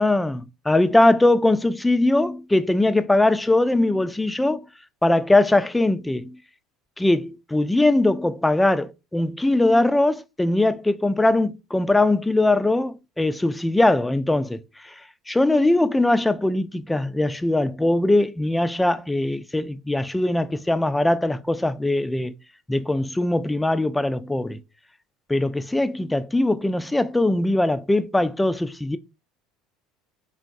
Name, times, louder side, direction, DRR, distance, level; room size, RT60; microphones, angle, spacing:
voice 1, 0.0-4.6 5.0-6.4 7.0-14.6 15.3-22.3 22.7-24.6 25.3-29.0, left 2 dB, 10° left, 0.3 m, -21 dB
3.6 x 3.5 x 2.5 m
hypercardioid pair, 70°, 0 cm